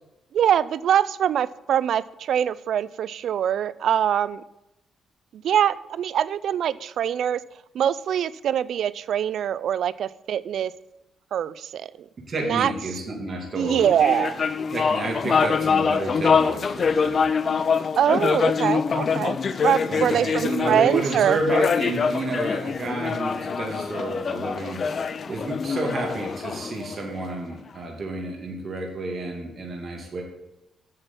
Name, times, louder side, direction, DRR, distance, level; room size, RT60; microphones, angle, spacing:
voice 1, 0.3-4.4 5.3-7.4 7.7-10.7 11.3-12.1 12.4-12.7 13.5-14.4 18.0-21.4, right 9 dB, 70° right, 18 dB, 0.3 m, -23 dB
voice 2, 12.3-13.8 14.7-17.2 19.9-30.2, right 2 dB, 45° right, 0 dB, 2.3 m, -30 dB
sound 1, 13.7-27.4, left 5 dB, 45° left, 0.5 m, -25 dB
8.4 x 6.7 x 5.5 m, 0.91 s
cardioid pair, 85°, 0 cm